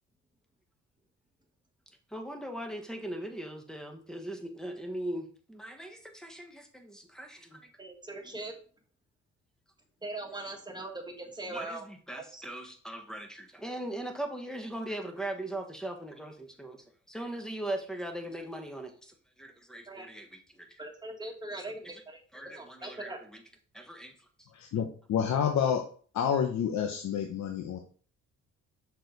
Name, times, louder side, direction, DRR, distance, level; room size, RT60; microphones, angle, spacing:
voice 1, 2.1-7.6 11.5-20.8 22.3-23.4 23.7-24.1, right 1 dB, ahead, 4 dB, 1.4 m, -40 dB
voice 2, 7.8-8.5 10.0-11.9 12.2-12.4 19.9-20.1 20.8-23.2, right 2 dB, 15° right, 3 dB, 1.7 m, -41 dB
voice 3, 24.5-25.8 26.1-27.8, left 8 dB, 65° left, 4 dB, 0.9 m, -29 dB
6.3 x 4.6 x 4.0 m, 0.43 s
cardioid pair, 90°, 30 cm